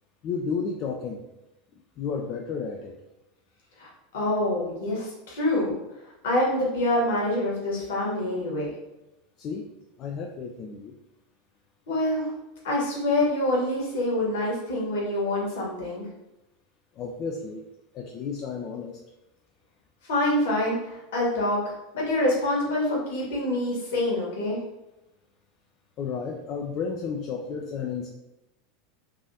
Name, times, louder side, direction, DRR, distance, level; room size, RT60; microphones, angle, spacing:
voice 1, 0.2-1.2 2.0-3.0 9.4-9.6 10.0-10.9 17.0-17.6 17.9-19.0 26.0-28.1, left 5 dB, 40° left, 1 dB, 0.3 m, -32 dB
voice 2, 3.8-5.7 6.2-8.7 11.9-12.3 12.6-16.0 20.1-21.6 21.9-24.6, left 1 dB, 65° left, -4 dB, 1.2 m, -26 dB
3.3 x 2.6 x 2.7 m, 0.95 s
figure-of-eight pair, 85°, 0 cm